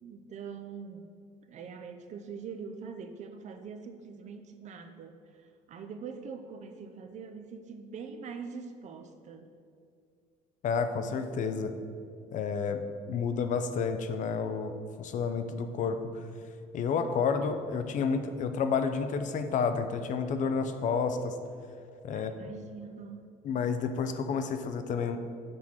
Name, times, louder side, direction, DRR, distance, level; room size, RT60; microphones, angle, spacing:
voice 1, 0.0-1.1 1.5-9.6 22.1-23.3, right 5 dB, 50° right, 7 dB, 0.5 m, -43 dB
voice 2, 10.6-11.7 12.3-12.8 13.1-16.0 16.7-21.4 22.0-22.3 23.4-25.2, left 5 dB, 55° left, 8 dB, 0.5 m, -30 dB
6.2 x 4.6 x 4.3 m, 2.3 s
cardioid pair, 95°, 15 cm